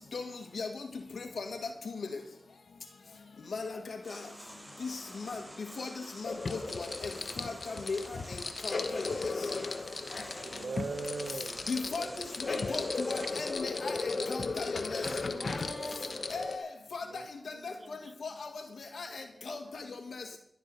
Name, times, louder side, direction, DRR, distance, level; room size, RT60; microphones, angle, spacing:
voice 1, 3.5-4.2 4.8-4.9 5.3-5.4 5.8-5.9 6.2-6.9 7.4-8.0 8.3-9.3 11.7-12.3 12.7-14.0 14.3-15.0 16.3-17.0 17.6-17.7 18.2-18.5 18.9-19.8 20.1-20.2, left 4 dB, 85° left, 5 dB, 1.7 m, -37 dB
sound 1, 4.0-13.5, equal, 10° right, 5.8 m, -49 dB
sound 2, 6.2-16.6, left 3 dB, 70° left, 1.1 m, -36 dB
voice 2, 10.4-11.6 11.9-12.3 16.5-16.6 17.1-17.3 19.1-19.2, right 4 dB, 80° right, 17 dB, 0.5 m, -40 dB
voice 3, 15.0-16.2 17.5-18.0 19.3-20.1, equal, 5° left, 0 dB, 6.3 m, -46 dB
12.0 x 11.5 x 5.4 m, 0.68 s
cardioid pair, 40°, 0 cm